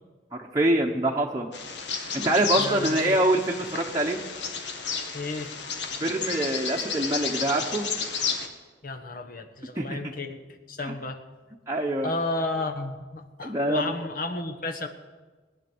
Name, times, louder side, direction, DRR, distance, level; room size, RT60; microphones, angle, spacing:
voice 1, 0.5-1.5 2.1-4.2 6.0-7.9 9.8-10.0 10.8-10.9 11.7-12.1 13.4-13.9, right 1 dB, 20° right, -2 dB, 1.0 m, -25 dB
Bird vocalization bird call bird song, 1.5-8.5, left 5 dB, 80° left, 1.7 m, -32 dB
voice 2, 2.6-3.2 5.1-5.5 8.8-10.4 10.7-11.2 12.0-14.9, left 2 dB, 50° left, 5 dB, 1.3 m, -32 dB
20.0 x 10.5 x 6.3 m, 1.3 s
head